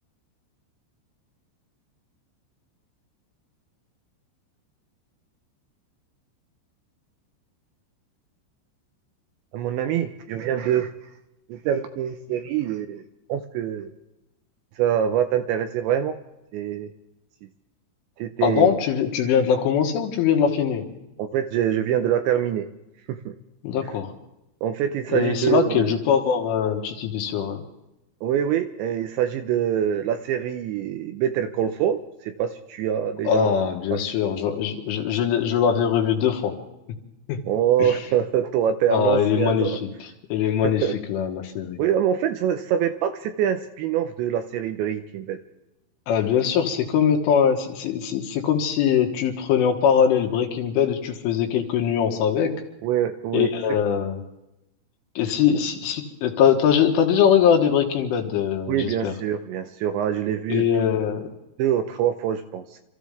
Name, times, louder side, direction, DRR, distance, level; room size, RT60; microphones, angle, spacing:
voice 1, 9.5-10.9 11.5-13.0 13.3-13.9 14.8-16.2 16.5-16.9 18.2-18.7 21.2-22.7 23.1-23.3 23.8-23.9 24.6-26.0 28.2-33.5 33.9-34.0 37.4-39.8 40.6-41.0 41.8-45.4 52.8-53.5 58.7-60.7 61.6-62.8, right 9 dB, 80° right, 8 dB, 2.7 m, -24 dB
voice 2, 18.4-20.8 23.6-24.1 25.1-27.6 33.3-36.5 37.3-37.4 37.8-37.9 38.9-39.9 40.3-41.8 46.1-52.6 53.3-54.2 55.2-59.1 60.5-61.3, left 8 dB, 75° left, 3 dB, 3.9 m, -22 dB
27.5 x 14.5 x 3.5 m, 0.91 s
omnidirectional pair, 5.8 m